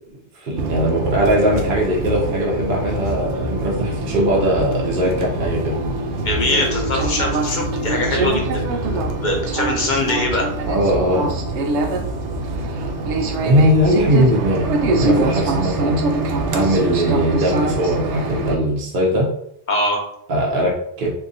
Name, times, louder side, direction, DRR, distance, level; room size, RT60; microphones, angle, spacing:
voice 1, 0.3-5.8 10.7-11.3 13.4-16.0 16.5-19.3 20.3-21.1, equal, 55° right, -3 dB, 0.9 m, -20 dB
sound 1, 0.6-18.6, right 2 dB, 90° right, 0.9 m, -23 dB
voice 2, 6.2-8.4 8.9-10.5 19.7-20.0, left 1 dB, 50° left, 0 dB, 0.7 m, -22 dB
3.8 x 2.8 x 2.6 m, 0.71 s
omnidirectional pair, 1.2 m